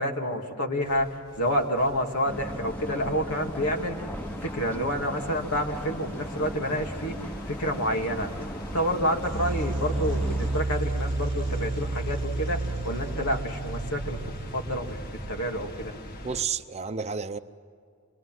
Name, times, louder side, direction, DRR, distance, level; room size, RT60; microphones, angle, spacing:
voice 1, 0.0-14.2 14.5-15.0 15.3-15.9, equal, 85° left, 2.3 m, -29 dB
sound 1, 0.8-16.4, left 1 dB, 45° left, 1.7 m, -42 dB
sound 2, 2.2-10.6, left 1 dB, 10° left, 1.0 m, -37 dB
sound 3, 9.2-15.7, right 2 dB, 55° right, 0.9 m, -31 dB
voice 2, 16.2-17.4, right 6 dB, 30° right, 0.7 m, -31 dB
26.5 x 22.5 x 7.6 m
head